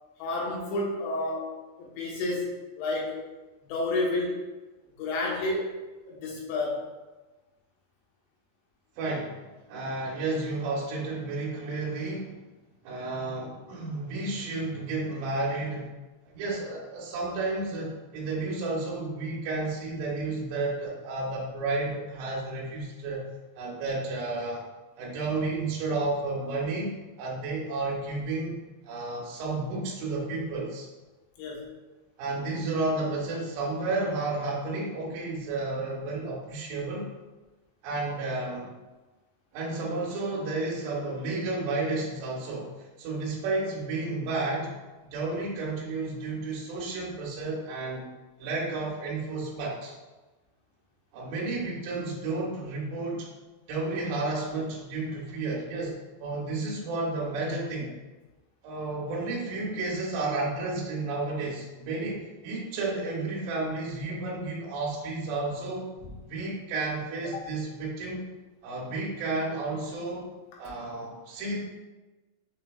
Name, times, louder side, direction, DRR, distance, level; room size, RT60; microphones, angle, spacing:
voice 1, 0.2-3.2 3.6-4.4 5.0-5.8 6.1-6.9 31.4-31.7 67.3-67.4, left 2 dB, 85° left, -4 dB, 3.1 m, -30 dB
voice 2, 9.0-9.4 9.7-12.4 12.8-15.9 16.3-23.2 23.6-24.6 25.0-28.6 28.8-30.9 32.2-37.1 37.8-38.7 39.5-42.7 43.0-44.7 45.1-48.1 48.4-50.0 51.1-53.3 53.7-57.9 58.6-65.9 66.3-68.3 68.6-70.3 70.6-71.6, right 2 dB, 85° right, -4 dB, 2.9 m, -32 dB
7.0 x 3.0 x 2.2 m, 1.2 s
omnidirectional pair, 4.8 m